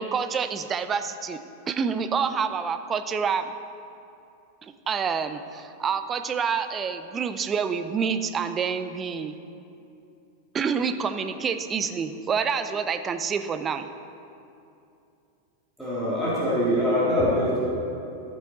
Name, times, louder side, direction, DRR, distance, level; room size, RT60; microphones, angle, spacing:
voice 1, 0.0-1.4 1.7-3.5 4.6-9.3 10.5-13.9, right 6 dB, 25° right, 9 dB, 0.5 m, -27 dB
voice 2, 15.8-17.6, equal, ahead, -10 dB, 2.1 m, -23 dB
14.0 x 5.5 x 4.0 m, 2.7 s
figure-of-eight pair, 90°, 0 cm